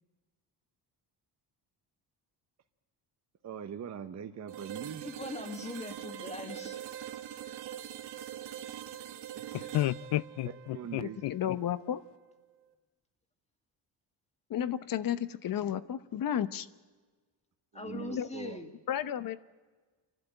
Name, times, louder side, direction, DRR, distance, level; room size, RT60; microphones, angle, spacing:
voice 1, 3.4-5.1 9.3-9.4 10.7-11.2 17.7-18.6, right 8 dB, 40° right, 0.9 m, -42 dB
sound 1, 4.5-12.3, right 11 dB, 90° right, 1.5 m, -44 dB
voice 2, 5.0-6.8 17.7-18.7, left 2 dB, 15° left, 2.0 m, -41 dB
voice 3, 9.5-11.6, left 15 dB, 80° left, 0.6 m, -32 dB
voice 4, 11.0-12.0 14.5-16.7 17.9-18.3 18.9-19.4, left 10 dB, 55° left, 0.9 m, -33 dB
30.0 x 12.0 x 8.8 m
cardioid pair, 160°, 40 cm